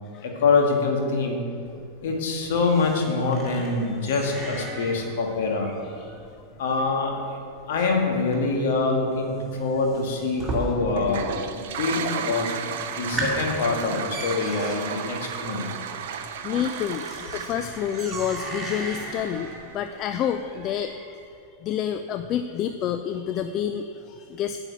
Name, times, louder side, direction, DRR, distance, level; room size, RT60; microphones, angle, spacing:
voice 1, 0.2-1.4 2.0-5.7 6.6-7.4 7.7-11.2 11.5-12.5 12.9-15.7, left 3 dB, 55° left, 1 dB, 1.7 m, -25 dB
sound 1, 1.7-11.2 11.5-12.1 12.5-12.6 12.9-21.2, right 2 dB, 15° right, 2.2 m, -37 dB
Toilet flush, 10.9-19.8, right 8 dB, 55° right, 0.6 m, -34 dB
voice 2, 16.4-20.9 21.6-24.6, left 9 dB, 35° left, 8 dB, 0.4 m, -29 dB
9.1 x 5.4 x 7.9 m, 2.4 s
figure-of-eight pair, 90°, 0 cm